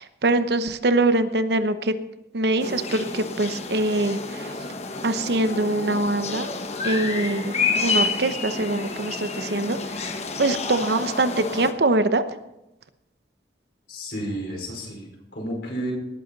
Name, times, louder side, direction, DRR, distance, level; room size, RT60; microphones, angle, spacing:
voice 1, 0.0-1.9 2.3-4.5 5.0-6.5 6.8-7.5 7.8-10.1 10.4-12.2, right 2 dB, 70° right, 11 dB, 0.9 m, -23 dB
sound 1, 2.6-11.7, left 4 dB, 35° left, 1.0 m, -29 dB
voice 2, 13.9-15.9, right 1 dB, 70° left, -1 dB, 4.9 m, -32 dB
19.0 x 8.3 x 4.0 m, 0.94 s
head